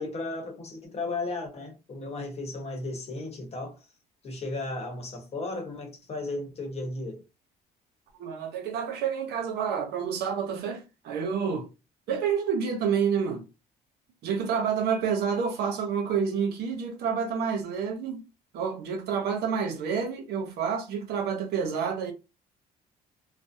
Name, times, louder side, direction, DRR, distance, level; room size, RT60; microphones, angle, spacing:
voice 1, 0.0-3.8 4.2-7.2, left 2 dB, 40° left, 0.9 m, -35 dB
voice 2, 8.2-11.7 12.1-13.5 14.2-18.2 18.5-22.1, right 6 dB, 75° right, 0.7 m, -29 dB
2.5 x 2.0 x 2.6 m
cardioid pair, 110°, 17 cm